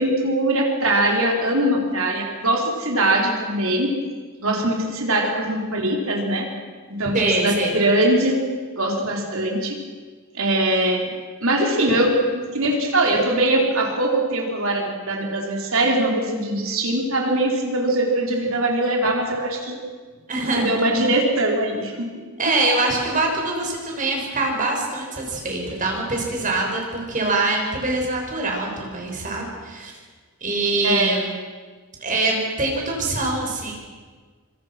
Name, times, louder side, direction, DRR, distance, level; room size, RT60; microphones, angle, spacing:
voice 1, 0.0-3.9 4.4-6.5 6.9-8.3 8.8-9.8 10.3-11.1 11.4-19.8 20.5-22.6 30.8-31.1, right 1 dB, 65° right, 1 dB, 4.6 m, -22 dB
voice 2, 7.1-7.7 20.3-20.7 22.4-29.9 30.4-31.3 32.0-33.7, right 2 dB, 40° right, 0 dB, 6.2 m, -24 dB
25.5 x 25.5 x 6.2 m, 1.5 s
head